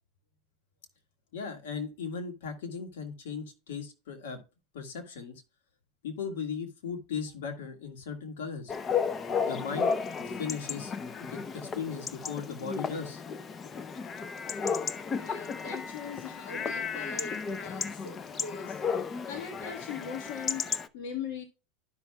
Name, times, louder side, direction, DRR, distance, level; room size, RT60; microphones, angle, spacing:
voice 1, 1.3-4.4 4.7-5.4 6.0-8.7 9.3-9.9 10.2-10.9 11.2-13.2, left 6 dB, 90° left, 1.7 m, -37 dB
Chatter / Bark / Livestock farm animals working animals, 8.7-20.9, left 6 dB, 25° left, 0.5 m, -34 dB
voice 2, 15.0-21.4, left 6 dB, 65° left, 1.4 m, -41 dB
12.5 x 5.8 x 2.3 m
supercardioid pair, 125°, 0 cm